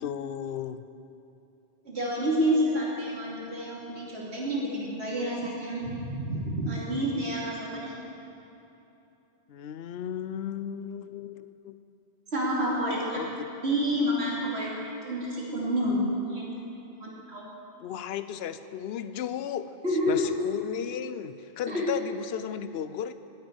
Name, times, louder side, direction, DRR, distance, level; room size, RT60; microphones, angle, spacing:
voice 1, 0.0-0.8 9.5-11.8 13.1-13.5 17.8-19.8 20.1-23.1, left 9 dB, 75° left, 13 dB, 0.8 m, -35 dB
voice 2, 1.8-7.9 12.3-13.2 13.6-16.6 17.0-17.4 19.8-20.3 21.7-21.9, equal, 80° right, -5 dB, 2.9 m, -29 dB
10.5 x 8.4 x 9.7 m, 2.9 s
omnidirectional pair, 1.1 m